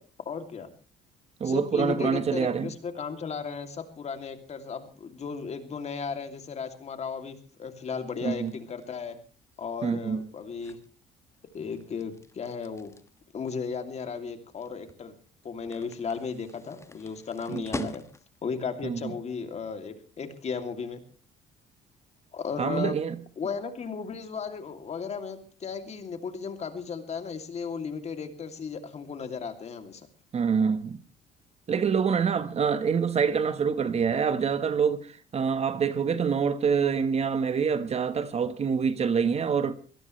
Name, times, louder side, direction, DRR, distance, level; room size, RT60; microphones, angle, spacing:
voice 1, 0.2-0.7 1.4-9.2 9.6-10.8 11.5-12.9 13.3-15.1 15.4-18.0 18.4-21.0 22.3-23.0 23.4-30.1, left 5 dB, 40° left, 2.8 m, -35 dB
voice 2, 1.4-2.7 8.2-8.5 9.8-10.3 17.5-17.9 18.8-19.1 22.6-23.2 30.3-31.0 31.7-39.7, right 6 dB, 40° right, 1.3 m, -26 dB
sound 1, 8.1-18.5, left 3 dB, 15° left, 1.4 m, -45 dB
24.0 x 17.5 x 3.2 m
cardioid pair, 110°, 17 cm